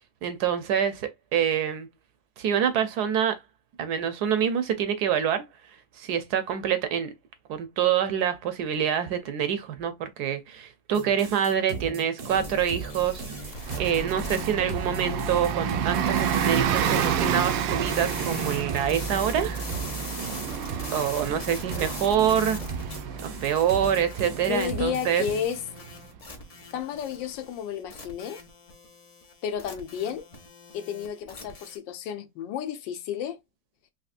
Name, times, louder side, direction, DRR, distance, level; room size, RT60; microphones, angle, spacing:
voice 1, 0.2-1.9 2.4-3.4 3.8-5.5 6.0-7.1 7.5-19.7 20.0-20.1 20.9-25.2, right 8 dB, 70° right, 1.1 m, -26 dB
sound 1, 10.9-25.5, right 5 dB, 50° right, 0.7 m, -37 dB
sound 2, 12.3-31.8, left 2 dB, 45° left, 0.5 m, -42 dB
Bus, 13.6-25.9, right 8 dB, 85° right, 1.3 m, -30 dB
voice 2, 24.5-25.6 26.7-28.4 29.4-30.3 30.7-33.4, left 8 dB, 85° left, 1.3 m, -32 dB
4.2 x 2.7 x 2.5 m
omnidirectional pair, 2.0 m